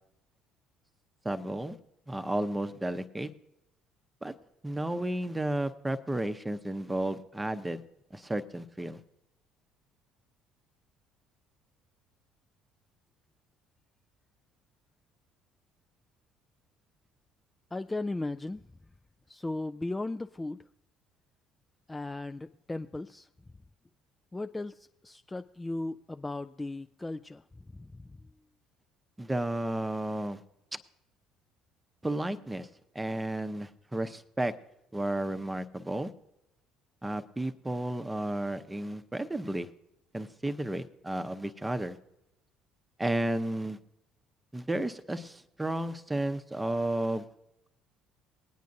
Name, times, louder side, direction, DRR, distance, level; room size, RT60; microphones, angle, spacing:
voice 1, 1.2-1.8 2.1-3.3 4.2-4.3 4.6-7.8 8.1-9.0 29.2-30.4 32.0-32.7 32.9-34.5 34.9-36.1 37.0-39.7 40.1-42.0 43.0-43.8 44.5-47.2, right 1 dB, 15° right, 10 dB, 0.8 m, -32 dB
voice 2, 17.7-18.6 19.3-20.7 21.9-23.3 24.3-28.2, left 2 dB, 15° left, 9 dB, 0.3 m, -37 dB
20.5 x 9.3 x 2.7 m, 0.84 s
figure-of-eight pair, 55°, 0 cm